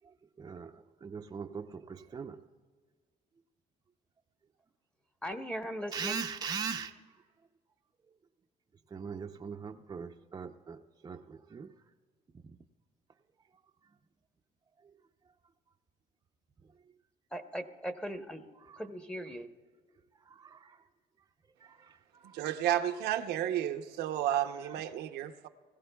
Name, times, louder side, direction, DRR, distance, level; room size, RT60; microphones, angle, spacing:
voice 1, 0.4-2.4 5.9-6.9 8.9-11.7 20.3-20.8 21.6-21.9 22.2-22.3, right 6 dB, 25° right, 0.6 m, -40 dB
voice 2, 5.2-6.3 17.3-18.4 18.8-19.5, equal, 5° left, 0.9 m, -39 dB
voice 3, 22.3-25.5, right 11 dB, 85° right, 0.8 m, -32 dB
22.0 x 15.0 x 2.3 m
cardioid pair, 110°, 17 cm